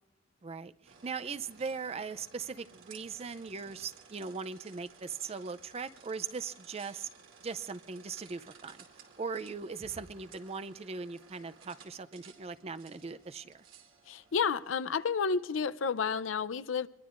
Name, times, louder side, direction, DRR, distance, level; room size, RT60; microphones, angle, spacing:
voice 1, 0.4-7.1 7.4-8.8 9.2-13.6, right 5 dB, 30° right, 0.4 m, -39 dB
sound 1, 0.8-15.3, right 5 dB, 85° right, 2.6 m, -57 dB
voice 2, 14.1-16.9, left 5 dB, 80° left, 0.5 m, -31 dB
24.5 x 22.0 x 2.5 m
head